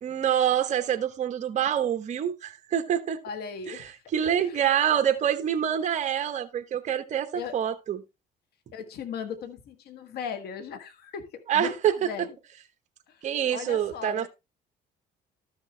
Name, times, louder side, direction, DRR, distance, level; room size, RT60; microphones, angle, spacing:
voice 1, 0.0-3.2 3.7-8.0 11.5-12.1 13.2-14.3, right 9 dB, 45° right, 1.1 m, -26 dB
voice 2, 3.2-3.9 4.2-4.6 7.3-7.6 8.7-12.3 13.1-13.2 13.5-14.3, left 6 dB, 70° left, 1.6 m, -38 dB
13.0 x 6.5 x 3.3 m
cardioid pair, 110°, 17 cm